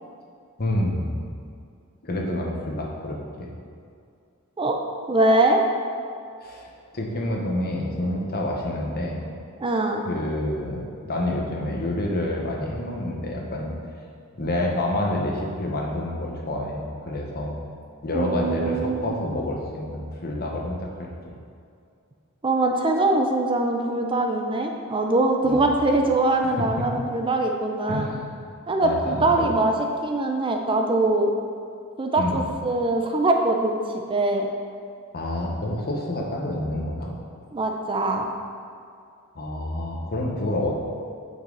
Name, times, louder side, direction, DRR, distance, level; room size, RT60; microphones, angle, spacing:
voice 1, 0.6-1.3 2.0-3.5 6.4-9.3 10.0-13.7 14.3-17.6 18.0-21.1 25.4-25.6 26.4-26.7 27.9-28.5 28.8-29.5 32.2-32.4 35.1-37.1 39.3-40.7, left 1 dB, 45° left, -1 dB, 1.1 m, -28 dB
voice 2, 5.1-5.6 9.6-10.0 18.1-19.1 22.4-28.1 28.7-29.7 30.0-31.3 32.0-33.8 34.1-34.5 37.5-38.3, right 2 dB, 25° right, 3 dB, 0.5 m, -22 dB
8.4 x 5.6 x 3.9 m, 2.4 s
head